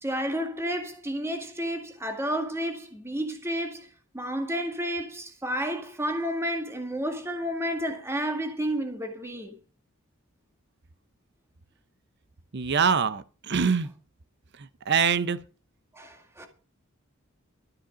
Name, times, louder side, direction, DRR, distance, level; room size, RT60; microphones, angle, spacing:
voice 1, 0.0-3.9 4.1-9.6 15.9-16.5, equal, 15° right, 2.0 m, -31 dB
voice 2, 12.5-13.9 14.9-15.4, right 6 dB, 55° right, 0.7 m, -24 dB
13.0 x 10.0 x 5.1 m
head